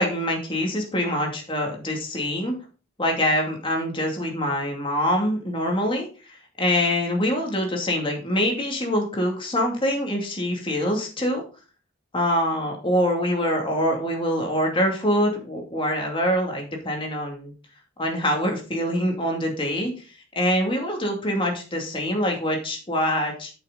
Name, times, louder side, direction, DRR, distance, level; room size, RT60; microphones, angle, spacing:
voice 1, 0.0-2.5 3.0-6.1 6.6-11.4 12.1-17.5 18.0-19.9 20.4-23.5, equal, 25° left, 1 dB, 2.5 m, -24 dB
8.8 x 6.6 x 4.0 m, 0.35 s
head